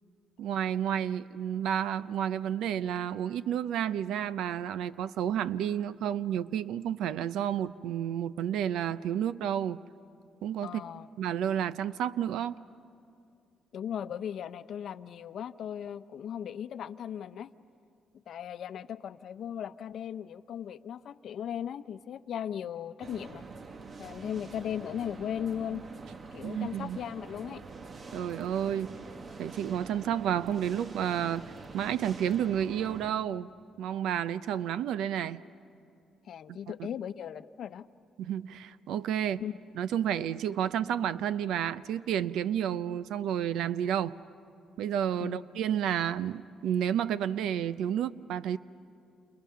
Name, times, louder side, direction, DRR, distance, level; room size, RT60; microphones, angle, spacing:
voice 1, 0.4-9.8 10.4-10.8 11.2-12.5 26.4-27.0 28.1-28.9 29.4-33.5 33.8-35.4 36.5-36.9 38.2-39.4 39.7-44.2 44.8-48.6, right 9 dB, 85° right, 15 dB, 0.6 m, -31 dB
voice 2, 10.6-11.1 13.7-17.5 18.3-23.4 24.0-25.9 26.3-27.6 36.3-37.9 39.4-39.5 42.7-42.8 45.2-45.6, left 9 dB, 65° left, 12 dB, 0.7 m, -37 dB
sound 1, 23.0-33.1, right 4 dB, 40° right, 1.2 m, -45 dB
29.0 x 29.0 x 5.8 m, 2.5 s
cardioid pair, 90°, 0 cm